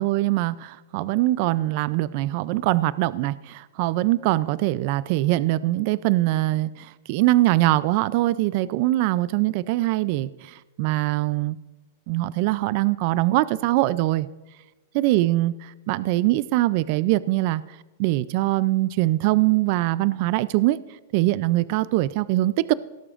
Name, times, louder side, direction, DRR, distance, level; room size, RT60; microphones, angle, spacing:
voice 1, 0.0-11.6 12.1-14.3 14.9-17.6 18.0-20.8 21.1-22.7, right 17 dB, 45° right, 18 dB, 0.3 m, -22 dB
17.0 x 12.5 x 2.5 m, 1.1 s
supercardioid pair, 155°, 0 cm